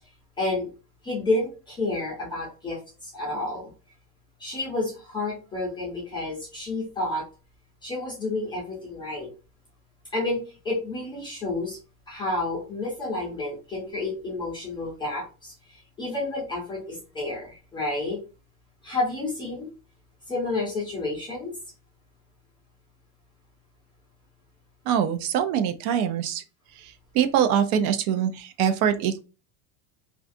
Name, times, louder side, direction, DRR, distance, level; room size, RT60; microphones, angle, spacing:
voice 1, 0.4-0.7 1.0-3.7 4.4-7.2 7.8-9.3 10.1-11.8 12.1-18.2 18.8-19.7 20.3-21.5, left 2 dB, 10° left, -5 dB, 0.3 m, -30 dB
voice 2, 24.9-26.4 27.1-29.2, right 9 dB, 70° right, 9 dB, 0.5 m, -23 dB
2.4 x 2.4 x 2.5 m, 0.33 s
cardioid pair, 165°, 45 cm